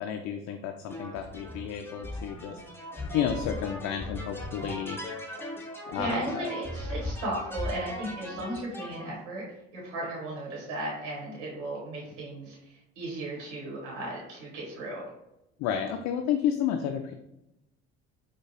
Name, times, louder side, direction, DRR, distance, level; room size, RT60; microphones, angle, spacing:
voice 1, 0.0-2.6 3.0-5.0 5.9-6.5 15.6-17.1, left 9 dB, 55° left, 5 dB, 0.4 m, -31 dB
sound 1, 0.9-9.1, left 1 dB, 5° left, 0.8 m, -38 dB
voice 2, 5.9-9.4 9.7-15.1, right 1 dB, 75° right, -4 dB, 1.2 m, -36 dB
4.5 x 2.3 x 2.9 m, 0.88 s
hypercardioid pair, 55°, 35 cm